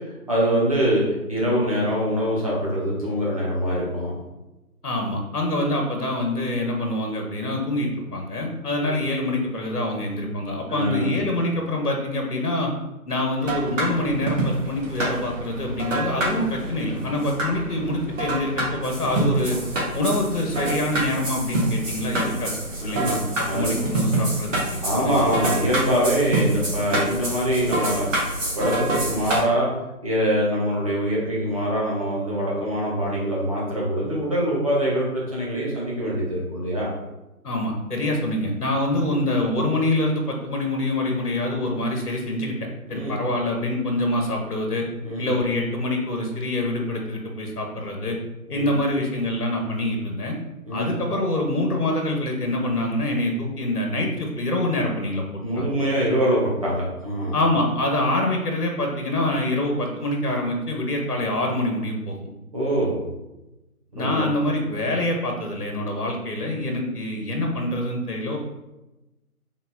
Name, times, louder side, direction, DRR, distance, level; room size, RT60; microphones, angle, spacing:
voice 1, 0.3-1.0 1.3-4.1 8.8-9.0 10.7-11.1 22.8-23.2 23.5-23.7 24.8-28.1 28.5-29.7 30.0-36.9 42.9-43.2 45.0-45.3 48.5-48.7 50.6-50.9 55.4-57.3 62.5-63.0 63.9-64.2, equal, 25° right, -6 dB, 0.9 m, -24 dB
voice 2, 4.8-12.7 13.1-19.6 19.9-22.5 22.8-24.9 37.4-42.6 42.9-44.9 45.2-48.2 48.5-50.4 50.7-55.2 55.6-55.7 57.3-62.2 63.9-68.4, left 1 dB, 75° left, 1 dB, 1.2 m, -25 dB
sound 1, 13.4-29.4, right 1 dB, 55° right, 1.5 m, -27 dB
4.1 x 3.9 x 2.6 m, 0.99 s
figure-of-eight pair, 160°, 46 cm